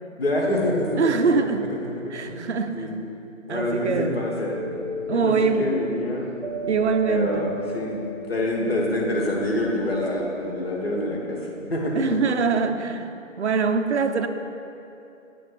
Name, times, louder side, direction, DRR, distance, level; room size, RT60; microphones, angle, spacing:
voice 1, 0.2-1.3 1.8-2.5 2.7-3.0 3.5-4.6 5.1-6.3 7.1-8.0 8.3-11.4 11.7-12.2, left 1 dB, 50° left, -2 dB, 1.5 m, -26 dB
voice 2, 1.0-1.7 2.1-2.9 3.5-4.2 5.1-5.7 6.7-7.5 12.0-13.1 13.4-14.3, right 5 dB, 60° right, 7 dB, 0.5 m, -23 dB
sound 1, 4.5-11.7, right 1 dB, 35° right, 0.9 m, -36 dB
8.4 x 3.4 x 6.4 m, 2.7 s
figure-of-eight pair, 160°, 39 cm